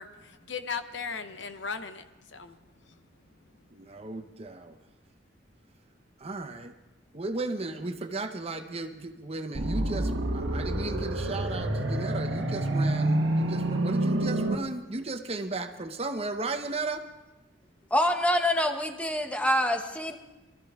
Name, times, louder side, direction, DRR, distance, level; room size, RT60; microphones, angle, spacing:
voice 1, 0.0-2.1 2.3-2.6, left 5 dB, 70° left, 9 dB, 0.9 m, -37 dB
voice 2, 3.7-4.8 6.2-6.7 7.1-17.0, right 2 dB, 30° right, 7 dB, 0.9 m, -35 dB
sound 1, 9.5-14.5, right 1 dB, 75° right, 1.3 m, -27 dB
voice 3, 17.9-20.2, left 1 dB, 5° left, 5 dB, 1.0 m, -26 dB
23.0 x 13.5 x 3.6 m, 1.1 s
head